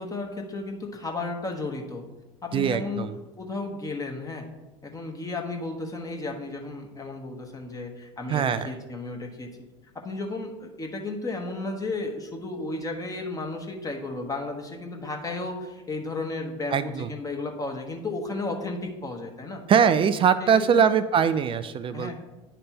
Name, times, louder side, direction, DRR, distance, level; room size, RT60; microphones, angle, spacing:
voice 1, 0.0-2.0 2.4-3.0 3.4-4.5 4.8-9.5 9.9-19.6 20.4-20.8 21.9-22.1, left 3 dB, 20° left, 2 dB, 1.3 m, -33 dB
voice 2, 2.5-3.1 8.3-8.7 16.7-17.1 19.7-22.1, right 7 dB, 30° right, 12 dB, 0.4 m, -22 dB
9.7 x 3.3 x 4.4 m, 1.1 s
hypercardioid pair, 85°, 17 cm